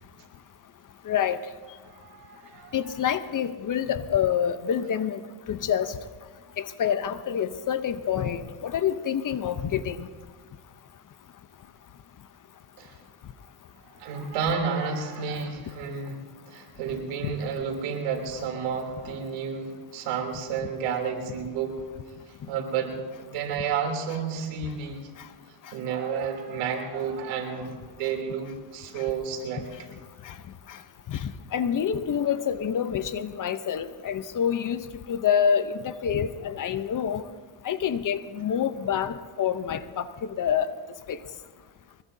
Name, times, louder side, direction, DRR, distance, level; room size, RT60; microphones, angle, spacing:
voice 1, 1.1-1.4 2.7-5.2 5.5-6.0 6.6-10.1 29.0-29.1 30.3-30.4 31.1-37.2 37.6-40.0 40.4-40.7 41.1-41.2, left 8 dB, 40° left, 12 dB, 0.8 m, -27 dB
voice 2, 1.9-2.8 12.8-12.9 14.0-21.8 22.5-25.1 25.7-27.7 28.0-29.9, right 6 dB, 90° right, 2 dB, 3.4 m, -31 dB
23.5 x 20.5 x 2.8 m, 1.5 s
cardioid pair, 110°, 49 cm